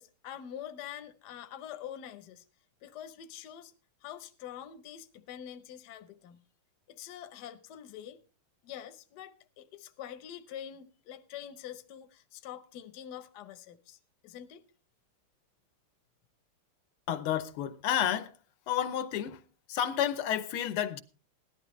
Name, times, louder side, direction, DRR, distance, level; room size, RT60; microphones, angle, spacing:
voice 1, 0.0-2.4 2.8-3.7 4.0-6.4 6.9-8.2 8.6-14.0 14.2-14.6, left 10 dB, 60° left, 1.2 m, -45 dB
voice 2, 17.1-18.3 18.7-21.0, left 10 dB, 85° left, 1.7 m, -31 dB
17.5 x 12.0 x 3.1 m
omnidirectional pair, 2.3 m